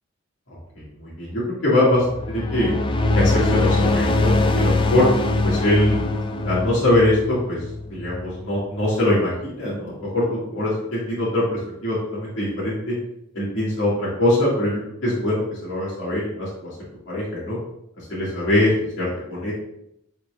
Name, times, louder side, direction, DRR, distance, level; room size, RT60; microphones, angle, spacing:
voice 1, 0.5-2.7 3.1-5.1 5.4-6.1 6.4-7.6 7.9-12.9 13.3-16.7 17.1-17.6 18.0-18.7 19.0-19.5, left 1 dB, 65° left, -7 dB, 2.2 m, -23 dB
sound 1, 2.0-8.6, left 2 dB, 25° left, 0.3 m, -22 dB
8.3 x 4.6 x 2.5 m, 0.79 s
head